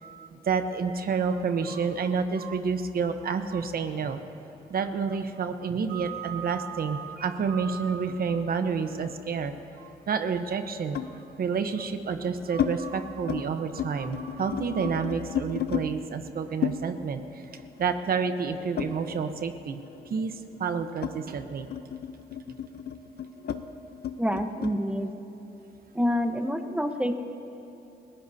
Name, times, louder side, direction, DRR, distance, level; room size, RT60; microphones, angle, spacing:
voice 1, 0.0-4.2 4.7-17.4 17.8-19.8 20.1-21.7, right 5 dB, 60° right, 8 dB, 1.0 m, -29 dB
sound 1, 8.1-9.7 10.9-11.2 11.9-12.7 13.1-13.4 13.7-15.9 16.6-19.5 19.8-24.8, left 9 dB, 65° left, 0.8 m, -34 dB
voice 2, 24.2-25.1 25.9-27.1, equal, 5° right, 6 dB, 1.0 m, -27 dB
29.5 x 16.0 x 2.8 m, 3.0 s
cardioid pair, 95°, 18 cm